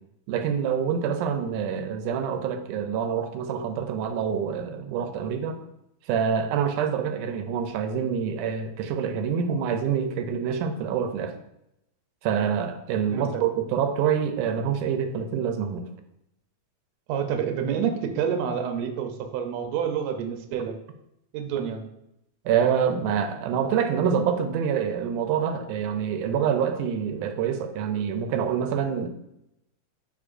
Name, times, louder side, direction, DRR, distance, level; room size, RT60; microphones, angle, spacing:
voice 1, 0.3-5.6 6.1-11.4 12.2-15.9 22.5-29.1, right 7 dB, 90° right, 7 dB, 2.1 m, -26 dB
voice 2, 13.1-13.4 17.1-20.8 21.3-21.8, right 7 dB, 75° right, 5 dB, 1.8 m, -28 dB
8.6 x 4.5 x 2.5 m, 0.82 s
omnidirectional pair, 3.5 m